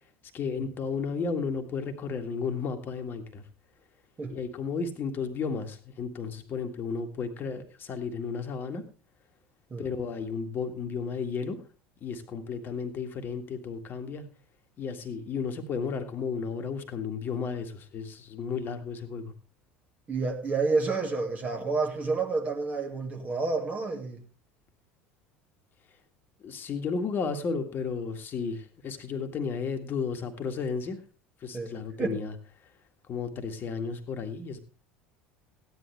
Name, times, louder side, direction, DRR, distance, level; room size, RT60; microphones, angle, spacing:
voice 1, 0.3-3.4 4.3-8.8 9.8-11.6 12.0-14.3 14.8-19.3 26.4-31.0 31.4-32.3 33.1-34.6, left 5 dB, 35° left, 1.8 m, -33 dB
voice 2, 20.1-24.2 31.5-31.7 32.0-32.2, right 3 dB, 25° right, 2.2 m, -29 dB
15.0 x 10.5 x 3.4 m
figure-of-eight pair, 70°, 6 cm